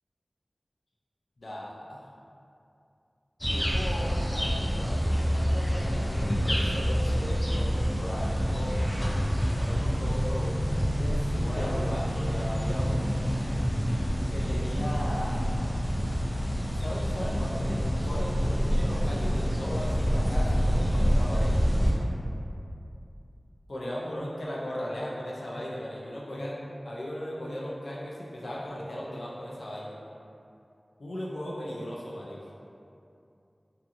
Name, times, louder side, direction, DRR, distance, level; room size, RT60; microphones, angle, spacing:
voice 1, 1.4-2.0 3.4-8.8 9.6-10.6 11.0-13.2 14.3-15.4 16.8-21.5 23.7-26.6 26.9-30.0 31.0-32.4, equal, 90° left, -5 dB, 0.4 m, -37 dB
sound 1, 3.4-21.9, equal, 20° left, 0.6 m, -27 dB
sound 2, 5.4-13.8, equal, 20° right, 0.6 m, -35 dB
2.6 x 2.5 x 2.4 m, 2.6 s
wide cardioid pair, 50°, 0 cm